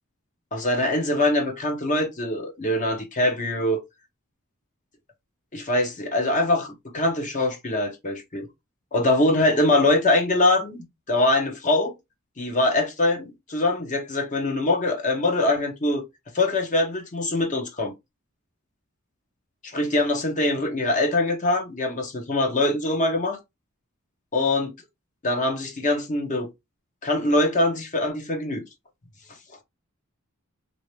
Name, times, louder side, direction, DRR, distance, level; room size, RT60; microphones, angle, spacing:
voice 1, 0.5-3.8 5.5-8.5 8.9-11.9 12.4-16.0 16.3-17.9 19.6-23.4 24.3-24.7 25.2-26.5 27.0-28.6, left 2 dB, 35° left, 0.9 m, -23 dB
3.2 x 2.8 x 3.0 m
head